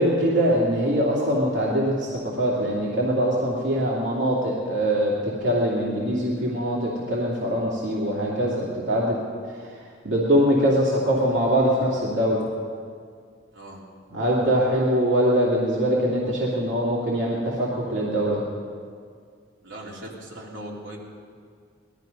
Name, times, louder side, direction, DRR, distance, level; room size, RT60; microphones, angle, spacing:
voice 1, 0.0-9.2 9.5-9.8 10.0-12.4 14.1-18.4, equal, 75° right, -5 dB, 2.6 m, -23 dB
voice 2, 19.6-21.0, right 1 dB, 90° right, -4 dB, 3.1 m, -39 dB
19.5 x 12.5 x 5.3 m, 2.1 s
head